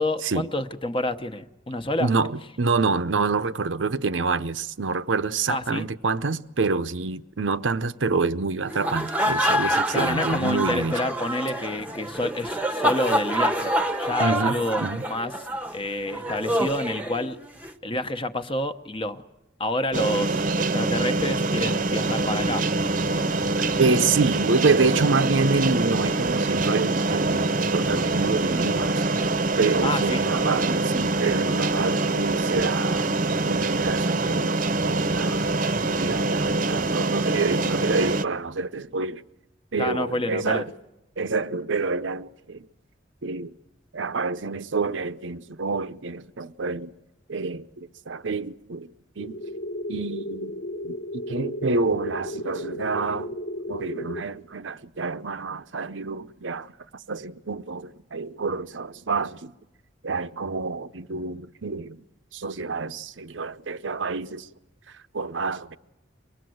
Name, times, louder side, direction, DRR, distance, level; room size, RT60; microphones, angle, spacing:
voice 1, 0.0-2.1 5.5-5.9 9.9-13.7 14.0-15.3 15.7-17.4 17.8-19.2 19.6-22.6 23.1-23.3 29.8-30.3 39.8-40.6, left 1 dB, 30° left, 1.0 m, -28 dB
voice 2, 2.0-11.0 14.2-15.0 23.8-29.0 29.6-33.1 33.4-35.5 35.8-39.2 39.7-40.7 41.2-42.7 43.2-43.5 43.9-46.9 47.3-49.4 49.9-50.6 50.8-53.4 53.7-56.7 57.1-59.5 60.0-62.0 62.3-64.5 65.1-65.8, right 4 dB, 85° right, 0.7 m, -27 dB
sound 1, 8.7-17.7, equal, 10° right, 1.0 m, -27 dB
sound 2, 19.9-38.2, right 2 dB, 45° right, 0.8 m, -24 dB
sound 3, 49.2-54.2, left 1 dB, 70° left, 1.5 m, -34 dB
24.0 x 20.0 x 7.8 m
head